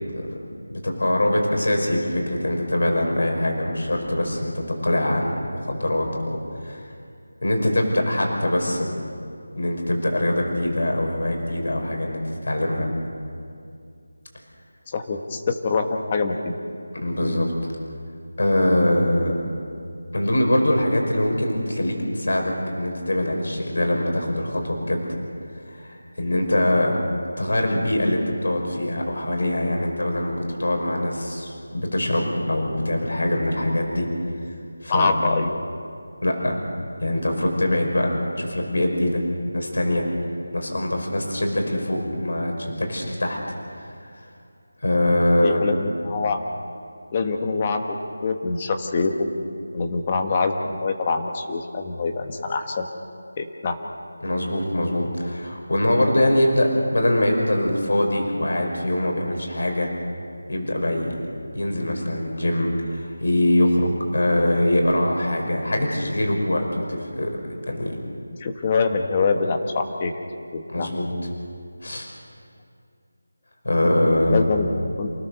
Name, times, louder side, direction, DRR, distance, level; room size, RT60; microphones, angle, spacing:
voice 1, 0.7-6.9 7.4-9.0 9.6-12.9 16.9-17.5 18.4-19.3 20.1-25.0 25.6-27.0 27.4-34.1 34.8-35.2 36.2-36.6 37.0-39.2 39.5-40.1 40.5-43.4 44.8-45.6 54.2-59.9 60.5-61.2 61.5-67.4 67.7-68.0 70.7-71.1 71.8-72.1 73.6-74.5, left 1 dB, 60° left, 1 dB, 5.5 m, -23 dB
voice 2, 14.9-16.5 34.9-35.6 45.4-46.4 47.1-48.0 48.2-49.3 49.7-52.9 53.4-53.8 68.4-70.1 70.5-70.9 74.3-74.7 75.0-75.1, left 4 dB, 15° left, 5 dB, 1.1 m, -24 dB
28.0 x 17.5 x 6.8 m, 2.4 s
figure-of-eight pair, 180°, 0 cm